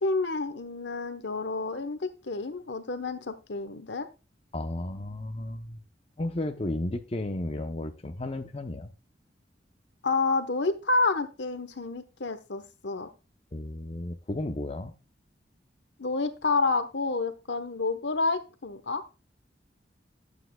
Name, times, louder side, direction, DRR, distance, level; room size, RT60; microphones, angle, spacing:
voice 1, 0.0-4.1 10.0-13.1 16.0-19.0, left 3 dB, 75° left, 1.0 m, -29 dB
voice 2, 4.5-5.8 6.2-8.9 13.5-14.9, left 1 dB, 35° left, 0.7 m, -33 dB
11.5 x 8.2 x 2.3 m
head